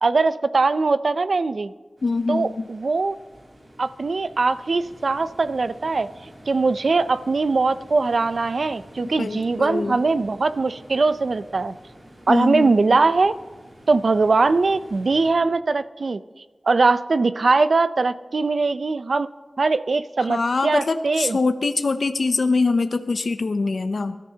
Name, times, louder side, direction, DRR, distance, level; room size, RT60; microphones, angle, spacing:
voice 1, 0.0-1.7 2.3-3.2 3.8-6.1 6.5-11.7 12.3-13.3 13.9-16.2 16.7-19.3 19.6-21.4, right 3 dB, 75° right, 14 dB, 0.4 m, -21 dB
voice 2, 2.0-2.7 9.2-10.0 12.3-13.0 20.2-24.2, left 3 dB, 80° left, 9 dB, 0.5 m, -23 dB
sound 1, 2.0-15.3, equal, 45° right, 4.2 m, -48 dB
25.5 x 13.5 x 2.8 m, 1.4 s
wide cardioid pair, 85°, 0 cm